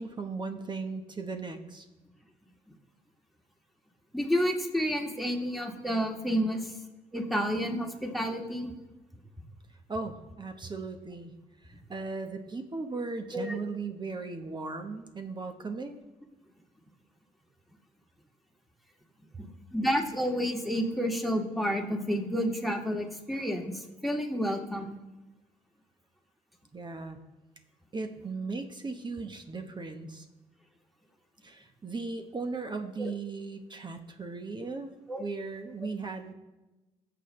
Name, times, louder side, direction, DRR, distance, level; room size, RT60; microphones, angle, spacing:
voice 1, 0.0-1.9 9.9-11.3 11.6-16.0 26.7-27.2 27.9-30.3 31.4-34.9 35.2-36.3, right 4 dB, 35° right, 6 dB, 1.2 m, -37 dB
voice 2, 4.1-6.7 7.1-8.7 13.3-13.6 19.7-25.0 33.0-33.1 35.1-35.2, equal, ahead, 1 dB, 2.1 m, -30 dB
16.5 x 7.1 x 3.2 m, 1.1 s
supercardioid pair, 60°, 14 cm